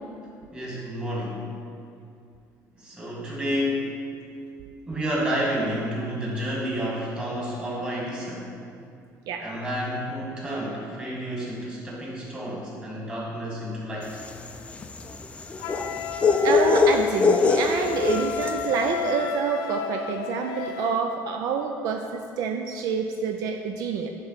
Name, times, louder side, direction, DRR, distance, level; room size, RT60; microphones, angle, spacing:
voice 1, 0.5-1.4 2.8-3.9 4.9-8.5 9.4-14.1, equal, 15° right, -5 dB, 1.9 m, -30 dB
sound 1, 14.1-18.7, left 4 dB, 20° left, 0.4 m, -23 dB
Wind instrument woodwind instrument, 15.6-21.1, left 7 dB, 85° left, 0.5 m, -33 dB
voice 2, 16.4-24.1, right 6 dB, 65° right, 4 dB, 0.5 m, -27 dB
9.9 x 3.4 x 5.8 m, 2.4 s
cardioid pair, 140°, 7 cm